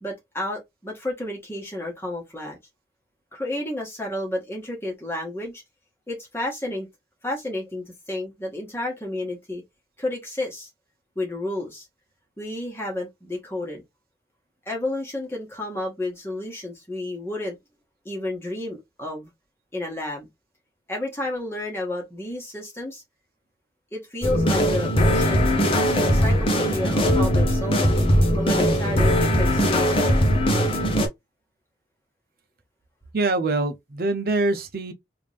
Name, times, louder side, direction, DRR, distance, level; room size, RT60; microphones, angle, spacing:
voice 1, 0.0-2.6 3.3-5.6 6.1-6.9 7.2-9.6 10.0-10.7 11.1-11.9 12.4-13.8 14.6-17.6 18.0-19.3 19.7-20.3 20.9-23.0 23.9-28.0 28.3-30.0, left 1 dB, 15° left, 1.5 m, -31 dB
sound 1, 24.2-31.1, equal, 30° left, 0.9 m, -20 dB
voice 2, 33.1-34.9, right 2 dB, 55° right, 0.7 m, -24 dB
3.5 x 2.7 x 3.3 m
head